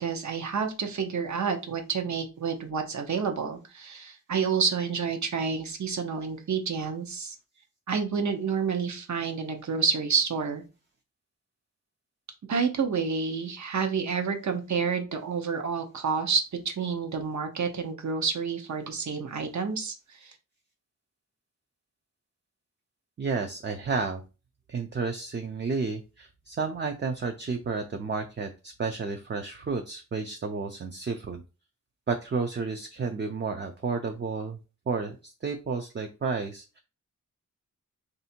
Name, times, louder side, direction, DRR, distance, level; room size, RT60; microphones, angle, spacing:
voice 1, 0.0-7.3 7.9-10.6 12.5-19.9 20.2-20.3, right 5 dB, 60° right, 5 dB, 0.8 m, -29 dB
voice 2, 23.2-24.2 24.7-31.4 32.1-34.6 34.9-36.8, right 4 dB, 35° right, 5 dB, 0.5 m, -31 dB
3.4 x 2.7 x 4.3 m, 0.30 s
wide cardioid pair, 120°, 32 cm